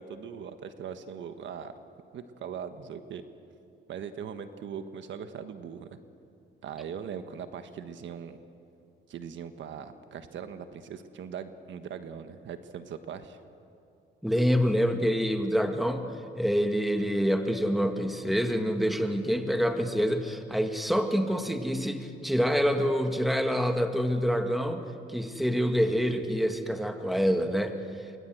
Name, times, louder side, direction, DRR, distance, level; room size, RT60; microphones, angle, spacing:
voice 1, 0.0-1.7 2.1-3.2 3.9-6.0 6.6-8.4 9.1-13.4, right 7 dB, 70° right, 9 dB, 1.4 m, -40 dB
voice 2, 14.2-16.0 16.4-24.8 25.1-27.8, equal, ahead, 5 dB, 2.1 m, -26 dB
27.5 x 24.0 x 7.9 m, 2.6 s
cardioid pair, 90°, 20 cm